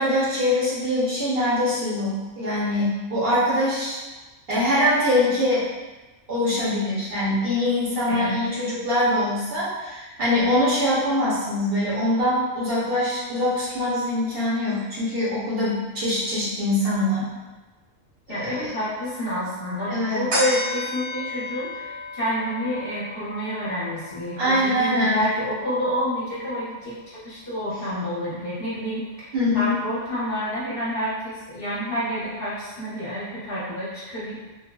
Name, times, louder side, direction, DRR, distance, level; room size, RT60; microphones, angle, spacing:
voice 1, 0.0-4.0 4.5-5.6 6.3-17.3 18.4-18.7 19.9-20.2 24.4-25.2 29.3-29.8, left 1 dB, 55° right, -9 dB, 0.8 m, -23 dB
voice 2, 8.1-8.6 18.3-29.3 29.5-34.4, equal, 50° left, -9 dB, 0.9 m, -29 dB
sound 1, 20.3-27.1 27.5-27.6, left 1 dB, 80° right, 1.6 m, -34 dB
3.2 x 2.0 x 2.2 m, 1.2 s
omnidirectional pair, 1.3 m